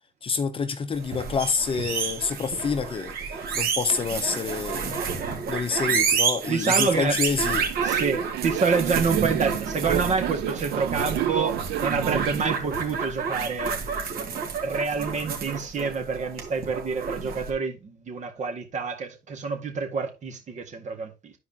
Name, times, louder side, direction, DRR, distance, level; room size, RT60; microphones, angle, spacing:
voice 1, 0.2-5.0 5.5-7.7, left 5 dB, 30° left, 0.8 m, -28 dB
sound 1, 1.0-17.5, right 6 dB, 60° right, 2.3 m, -29 dB
voice 2, 6.5-7.2 7.8-13.8 14.3-21.3, right 5 dB, 45° right, 2.0 m, -28 dB
Subway metro underground, 7.4-12.4, right 15 dB, 80° right, 0.6 m, -31 dB
13.0 x 4.7 x 2.9 m
cardioid pair, 110°, 17 cm